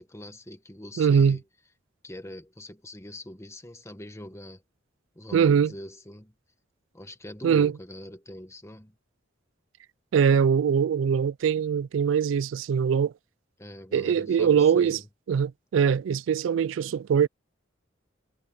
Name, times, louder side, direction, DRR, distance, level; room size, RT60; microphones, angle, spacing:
voice 1, 0.0-1.4 2.0-4.6 5.1-6.3 6.9-8.9 13.6-15.1, left 1 dB, 15° left, 1.6 m, -43 dB
voice 2, 1.0-1.4 5.3-5.7 7.4-7.7 10.1-13.1 13.9-15.0 15.3-17.3, right 7 dB, 80° right, 0.3 m, -22 dB
head